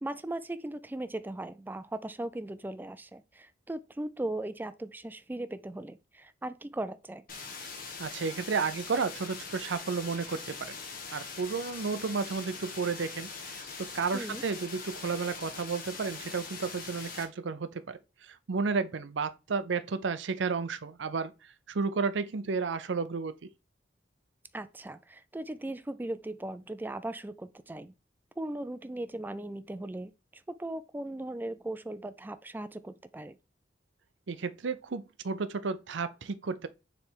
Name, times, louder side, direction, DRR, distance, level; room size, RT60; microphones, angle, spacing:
voice 1, 0.0-7.2 14.1-14.4 24.5-27.9 28.4-33.4, right 1 dB, 10° right, 0.3 m, -38 dB
sound 1, 7.3-17.2, left 4 dB, 50° left, 1.6 m, -42 dB
voice 2, 8.0-10.8 11.1-21.3 21.7-23.3 34.3-36.7, right 4 dB, 80° right, 0.6 m, -32 dB
6.7 x 3.3 x 4.5 m
head